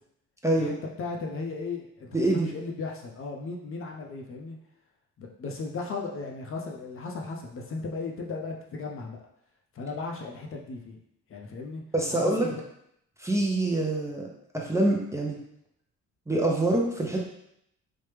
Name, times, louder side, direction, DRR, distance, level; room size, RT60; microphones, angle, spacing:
voice 1, 0.6-4.6 5.2-9.2 9.7-11.0 11.3-11.8 12.1-12.5, left 3 dB, 45° left, 0 dB, 0.6 m, -36 dB
voice 2, 2.1-2.5 11.9-12.5 13.2-14.3 14.5-15.4 16.3-17.2, right 2 dB, 10° right, -2 dB, 0.5 m, -25 dB
3.2 x 2.1 x 3.2 m, 0.75 s
cardioid pair, 90°, 30 cm